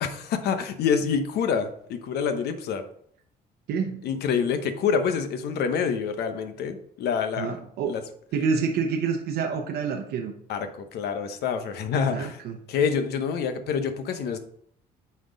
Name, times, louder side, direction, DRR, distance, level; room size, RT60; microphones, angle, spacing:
voice 1, 0.0-2.8 4.0-7.6 7.9-8.0 10.5-12.4 12.7-14.4, left 6 dB, 75° left, 8 dB, 1.0 m, -27 dB
voice 2, 3.7-4.0 7.4-8.0 8.3-10.3 12.1-12.6, right 5 dB, 75° right, 3 dB, 0.8 m, -27 dB
8.9 x 4.4 x 3.9 m, 0.66 s
cardioid pair, 110°, 17 cm